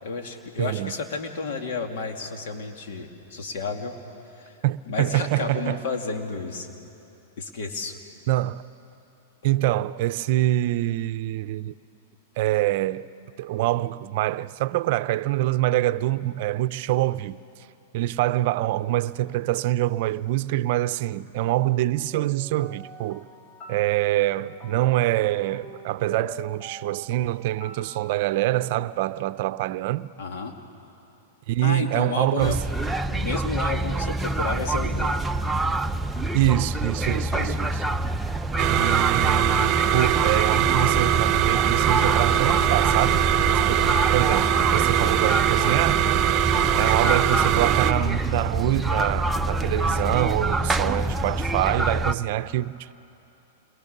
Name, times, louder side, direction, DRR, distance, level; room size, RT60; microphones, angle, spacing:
voice 1, 0.0-3.9 4.4-4.6 4.9-6.7 7.4-8.0 30.2-30.6 31.6-32.6 33.1-35.2 37.3-37.6 46.8-47.1, left 4 dB, 65° left, 2.6 m, -32 dB
voice 2, 0.6-0.9 4.6-5.8 8.3-8.6 9.4-11.7 12.4-13.1 13.4-17.4 17.9-23.3 23.7-30.1 31.5-32.6 36.3-37.8 38.7-46.2 46.8-52.9, right 15 dB, 55° right, 0.6 m, -25 dB
sound 1, 22.1-28.0, right 1 dB, 20° left, 3.0 m, -45 dB
sound 2, 32.4-52.1, right 1 dB, 5° right, 0.6 m, -26 dB
sound 3, 38.6-47.9, right 12 dB, 40° right, 0.9 m, -22 dB
29.0 x 23.0 x 6.8 m
hypercardioid pair, 120°, 0 cm